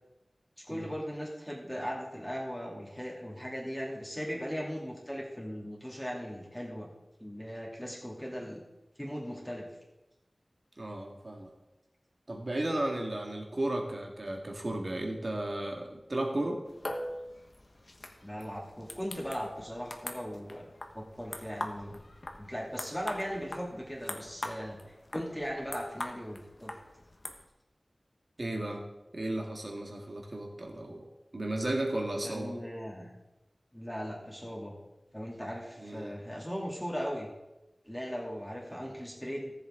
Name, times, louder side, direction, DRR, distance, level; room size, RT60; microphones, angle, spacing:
voice 1, 0.6-6.9 7.2-8.6 9.0-9.7 18.2-22.0 22.4-24.8 25.1-26.7 32.2-33.1 33.7-34.7 35.1-37.3 37.8-39.5, equal, 5° left, -3 dB, 2.8 m, -38 dB
voice 2, 10.8-11.5 12.3-16.6 28.4-28.8 29.1-31.1 31.3-32.6 35.8-36.2, right 1 dB, 50° right, 2 dB, 2.0 m, -34 dB
sound 1, 16.7-27.5, left 1 dB, 55° left, 1.2 m, -43 dB
14.0 x 7.7 x 3.8 m, 0.99 s
wide cardioid pair, 45°, 0 cm